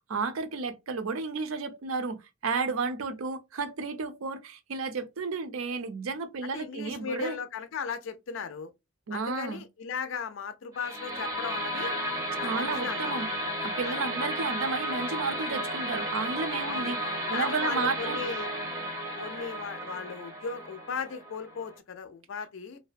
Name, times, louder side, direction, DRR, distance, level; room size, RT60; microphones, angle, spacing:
voice 1, 0.1-7.4 9.1-9.6 12.4-17.0 17.3-18.2, right 4 dB, 85° right, 0.5 m, -32 dB
voice 2, 6.4-8.7 9.1-11.9 12.4-13.1 13.9-14.0 16.7-16.9 17.3-18.5 19.2-22.8, left 5 dB, 65° left, 0.4 m, -37 dB
sound 1, 10.7-21.8, equal, 15° right, 0.6 m, -33 dB
2.6 x 2.2 x 2.4 m
head